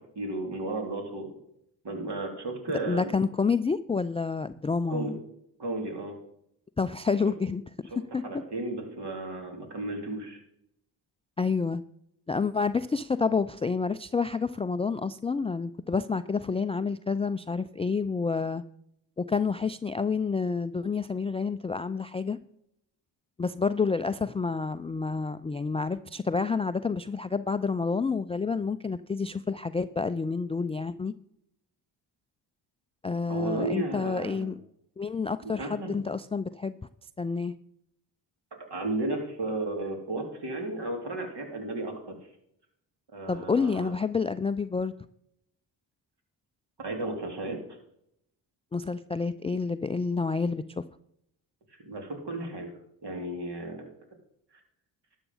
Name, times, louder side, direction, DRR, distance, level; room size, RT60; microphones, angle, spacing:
voice 1, 0.1-1.4 1.8-3.1 4.9-5.1 5.6-6.2 8.2-10.4 33.3-34.5 35.4-36.0 38.7-42.2 43.1-43.9 46.8-47.6 51.8-52.7 53.0-53.9, right 2 dB, 50° right, 2 dB, 3.3 m, -34 dB
voice 2, 2.9-5.2 6.8-7.6 8.1-8.2 11.4-11.8 12.3-18.6 19.2-22.4 23.4-31.1 33.0-34.5 35.0-36.8 37.2-37.5 43.3-44.9 48.7-50.8, left 4 dB, 15° left, 12 dB, 0.3 m, -29 dB
12.0 x 7.4 x 5.5 m, 0.75 s
hypercardioid pair, 45°, 50 cm